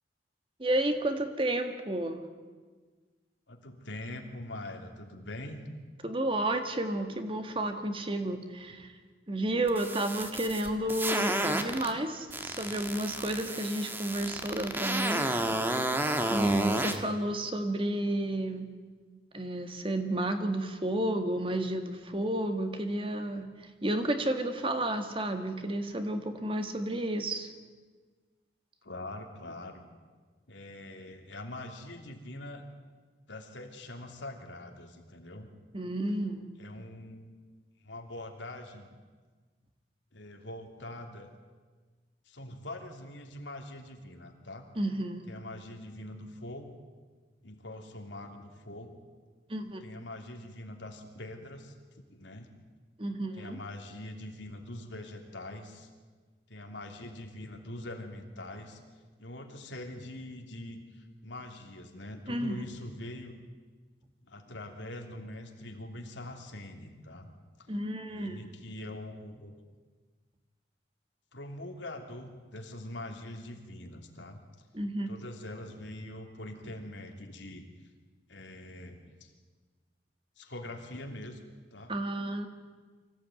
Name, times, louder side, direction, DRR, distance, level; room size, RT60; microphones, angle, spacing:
voice 1, 0.6-2.2 6.0-8.9 9.3-15.4 16.3-18.7 19.3-27.5 35.7-36.4 44.8-45.3 49.5-50.0 53.0-53.6 62.3-62.7 67.7-68.4 74.7-75.1 81.9-82.5, right 1 dB, 30° right, 7 dB, 1.7 m, -31 dB
voice 2, 3.5-5.6 28.8-29.9 30.5-32.6 33.3-35.5 36.6-37.3 37.8-38.9 40.1-41.3 42.3-44.7 45.3-46.7 47.4-49.0 49.8-52.5 53.4-55.9 56.5-58.8 59.2-63.3 64.3-67.3 67.7-67.8 68.1-69.5 71.3-74.4 75.1-77.6 78.3-79.3 80.4-81.4 81.7-81.9, left 1 dB, 85° left, 3 dB, 3.0 m, -43 dB
sound 1, 9.7-11.9 12.3-17.0, right 1 dB, 10° right, 1.5 m, -31 dB
24.5 x 15.5 x 9.2 m, 1.4 s
head